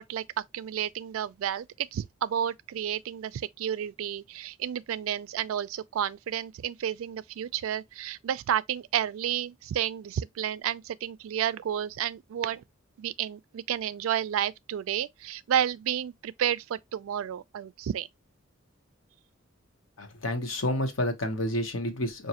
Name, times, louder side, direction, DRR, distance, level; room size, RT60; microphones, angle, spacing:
voice 1, 0.0-12.6 13.0-18.1, right 9 dB, 85° right, 0.3 m, -31 dB
voice 2, 20.0-22.3, left 1 dB, 75° left, 0.9 m, -29 dB
4.9 x 2.5 x 2.8 m
head